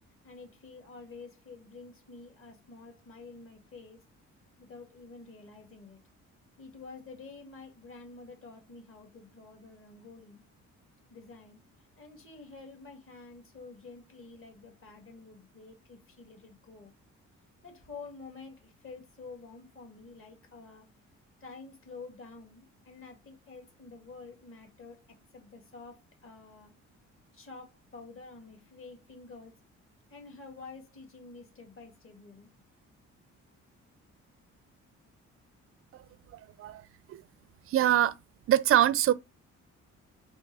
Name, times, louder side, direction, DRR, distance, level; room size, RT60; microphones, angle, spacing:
voice 1, 0.2-4.0 4.6-6.0 6.6-10.4 11.1-11.6 12.0-16.9 17.6-20.9 21.4-25.0 25.3-26.7 27.3-29.5 30.1-32.5, left 4 dB, 45° left, 1.8 m, -49 dB
voice 2, 37.7-38.1 38.5-39.1, right 12 dB, 50° right, 0.4 m, -23 dB
3.5 x 2.9 x 4.5 m
cardioid pair, 90°, 30 cm